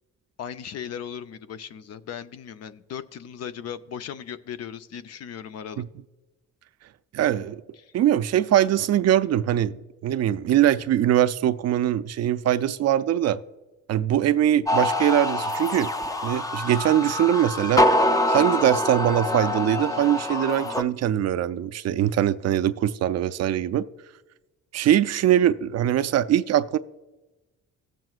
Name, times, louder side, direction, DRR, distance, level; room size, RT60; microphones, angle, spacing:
voice 1, 0.4-5.9 7.8-7.9, left 8 dB, 55° left, 0.6 m, -37 dB
voice 2, 7.1-7.6 7.9-13.4 13.9-15.9 16.2-17.8 18.3-23.8 24.7-26.8, right 11 dB, 55° right, 0.4 m, -22 dB
sound 1, 14.7-20.8, left 1 dB, 10° left, 0.5 m, -25 dB
18.0 x 7.7 x 2.4 m
cardioid pair, 90°, 30 cm